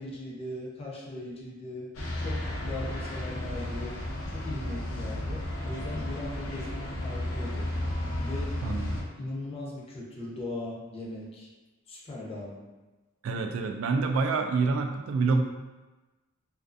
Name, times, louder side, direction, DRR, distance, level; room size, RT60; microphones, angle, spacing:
voice 1, 0.0-1.9 2.2-4.0 4.3-7.7 8.1-8.6 9.2-11.5 11.9-12.7, left 2 dB, 30° left, -5 dB, 0.5 m, -39 dB
sound 1, 1.9-9.0, left 1 dB, 90° left, 0.6 m, -33 dB
voice 2, 8.6-9.1 13.2-15.4, right 4 dB, 80° right, 6 dB, 0.3 m, -27 dB
2.4 x 2.4 x 2.4 m, 1.2 s
head